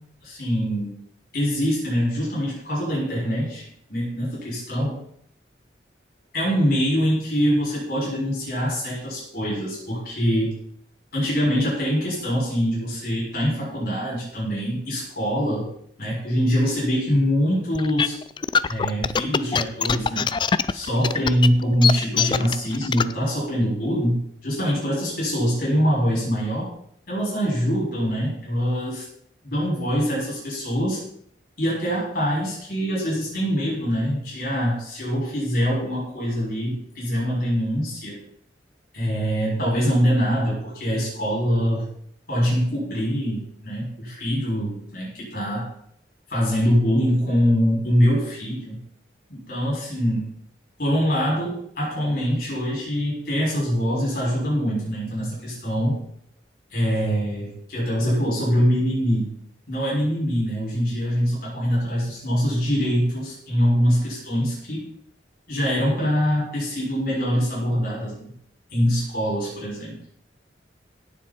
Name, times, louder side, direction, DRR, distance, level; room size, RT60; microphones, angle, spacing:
voice 1, 0.2-1.0 1.3-3.6 3.9-5.0 6.3-10.6 11.1-15.6 16.0-18.1 18.7-20.3 20.7-26.7 27.1-29.0 29.4-31.0 31.6-38.2 38.9-41.8 42.3-45.7 46.3-48.8 49.3-50.3 50.8-56.0 56.7-59.3 59.7-64.8 65.5-68.3 68.7-70.0, equal, 55° left, -5 dB, 6.4 m, -24 dB
sound 1, 17.7-23.1, left 6 dB, 25° left, 0.3 m, -22 dB
17.0 x 7.3 x 4.4 m, 0.67 s
head